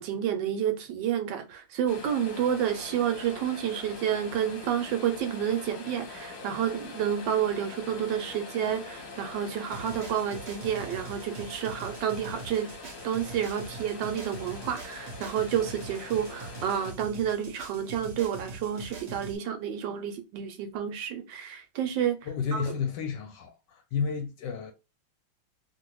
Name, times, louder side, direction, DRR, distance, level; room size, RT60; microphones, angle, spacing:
voice 1, 0.0-12.7 13.0-22.2 22.5-22.6, right 9 dB, 75° right, 1.2 m, -30 dB
sound 1, 1.9-16.9, left 3 dB, 55° left, 1.0 m, -43 dB
sound 2, 9.7-19.3, right 3 dB, 50° right, 0.9 m, -43 dB
voice 2, 22.2-24.7, left 6 dB, 75° left, 1.1 m, -31 dB
2.8 x 2.7 x 3.0 m
omnidirectional pair, 2.2 m